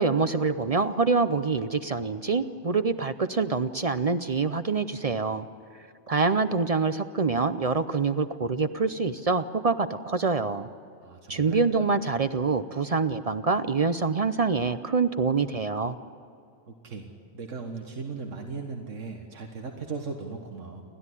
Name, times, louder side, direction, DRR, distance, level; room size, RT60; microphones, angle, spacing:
voice 1, 0.0-5.5 6.1-10.7 11.3-16.0, right 4 dB, 40° right, 12 dB, 0.5 m, -25 dB
voice 2, 11.0-11.7 16.7-17.1 17.3-20.8, right 4 dB, 90° right, 3 dB, 1.8 m, -37 dB
29.5 x 12.5 x 9.8 m, 2.6 s
omnidirectional pair, 1.3 m